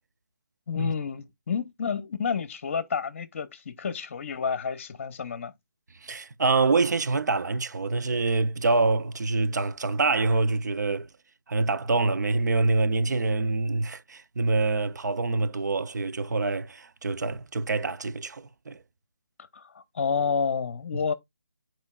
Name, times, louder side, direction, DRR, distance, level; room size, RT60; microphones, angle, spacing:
voice 1, 0.7-5.5 19.5-21.1, left 6 dB, 40° left, 0.8 m, -30 dB
voice 2, 6.0-11.1 11.5-18.8, right 3 dB, 70° right, 0.6 m, -26 dB
12.0 x 4.6 x 2.3 m
hypercardioid pair, 165°, 10 cm